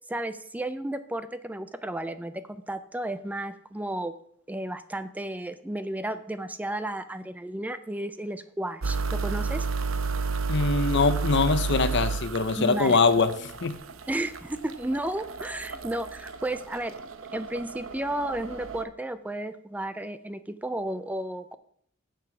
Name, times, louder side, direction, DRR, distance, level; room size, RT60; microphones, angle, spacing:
voice 1, 0.1-4.1 4.5-9.7 12.6-13.0 14.1-16.9 17.3-21.6, right 1 dB, 10° right, 12 dB, 0.4 m, -33 dB
sound 1, 8.8-18.8, right 4 dB, 75° right, 0.7 m, -32 dB
voice 2, 10.5-13.3 13.6-13.7, left 4 dB, 60° left, 12 dB, 0.8 m, -23 dB
9.1 x 6.9 x 6.0 m, 0.68 s
head